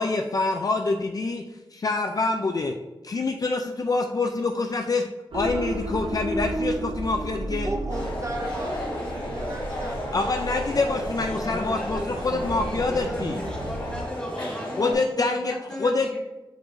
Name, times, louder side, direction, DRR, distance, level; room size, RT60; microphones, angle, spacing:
voice 1, 0.0-1.4 1.7-2.7 3.0-5.1 5.3-7.7 10.1-13.4 14.8-15.5 15.8-16.2, left 3 dB, 45° left, 4 dB, 0.4 m, -26 dB
sound 1, 5.3-14.0, right 1 dB, 85° right, 0.9 m, -33 dB
voice 2, 7.6-10.2 11.9-12.1, right 2 dB, 35° right, 2 dB, 0.6 m, -36 dB
sound 2, 7.9-14.9, left 1 dB, 70° left, 2.0 m, -33 dB
voice 3, 11.1-16.2, equal, 10° left, -3 dB, 1.7 m, -37 dB
7.9 x 4.7 x 2.6 m, 1.0 s
wide cardioid pair, 115°, 9 cm